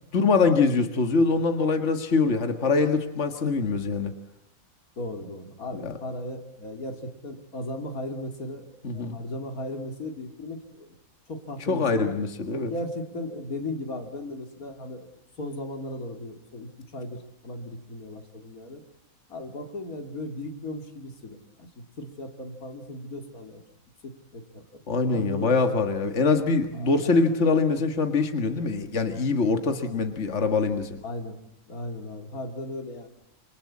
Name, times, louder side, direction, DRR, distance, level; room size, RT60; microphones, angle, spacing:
voice 1, 0.1-4.1 5.7-6.0 8.8-9.2 11.7-12.7 24.9-31.0, left 4 dB, 55° left, 6 dB, 2.0 m, -24 dB
voice 2, 5.0-8.6 8.9-10.9 11.3-12.1 12.7-15.1 15.4-18.8 19.3-23.6 24.0-24.6 25.1-25.6 26.7-26.9 31.0-31.4 31.7-33.1, left 1 dB, 90° left, 4 dB, 3.1 m, -36 dB
27.0 x 26.0 x 8.6 m, 0.78 s
omnidirectional pair, 1.5 m